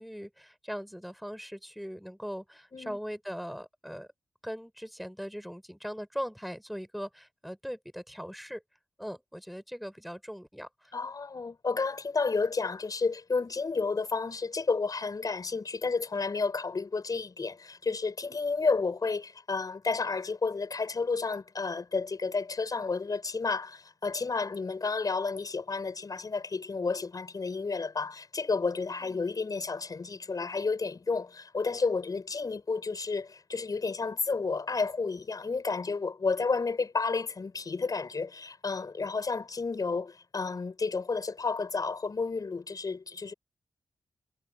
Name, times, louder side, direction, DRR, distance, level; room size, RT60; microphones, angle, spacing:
voice 1, 0.0-4.1 4.4-8.6 9.0-10.9 29.0-29.2, equal, ahead, 4.9 m, -40 dB
voice 2, 10.9-43.3, left 4 dB, 45° left, 5.7 m, -31 dB
cardioid pair, 70°, 8 cm